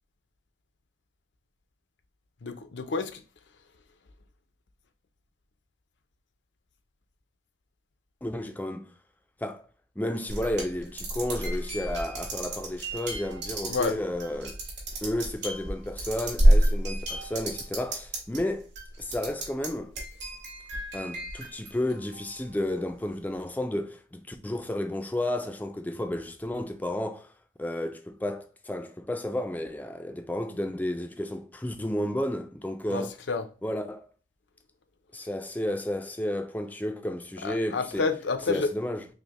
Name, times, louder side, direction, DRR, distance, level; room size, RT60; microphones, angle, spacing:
voice 1, 2.4-3.1 13.7-14.0 32.9-33.4 37.4-38.7, left 4 dB, 85° left, 0.6 m, -29 dB
voice 2, 8.2-8.9 9.4-9.6 10.0-14.6 15.0-18.7 19.0-19.9 20.9-27.3 27.6-33.1 33.6-34.1 35.1-38.1 38.5-39.1, left 1 dB, 10° left, 0.3 m, -32 dB
sound 1, 10.3-18.4 18.7-19.7 20.0-22.4, right 1 dB, 85° right, 2.1 m, -28 dB
5.2 x 2.1 x 3.0 m
head